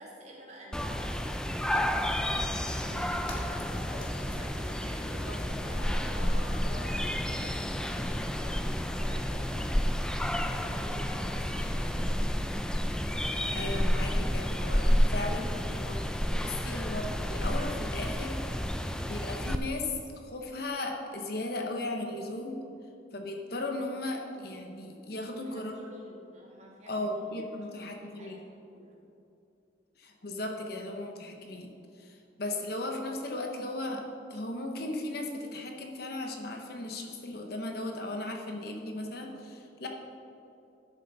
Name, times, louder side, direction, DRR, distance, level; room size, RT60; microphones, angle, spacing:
voice 1, 0.0-2.1 2.8-9.8 10.6-12.0 25.1-27.1 27.5-29.0, equal, 35° right, -3 dB, 1.9 m, -50 dB
sound 1, 0.7-19.6, equal, 5° left, 0.3 m, -30 dB
sound 2, 2.6-12.1, left 2 dB, 90° left, 1.5 m, -47 dB
voice 2, 13.5-16.0 16.4-18.4 19.1-22.6 23.1-25.9 26.9-28.4 30.0-31.7 32.0-39.9, left 2 dB, 55° left, 3 dB, 0.9 m, -36 dB
12.0 x 7.1 x 4.0 m, 2.7 s
head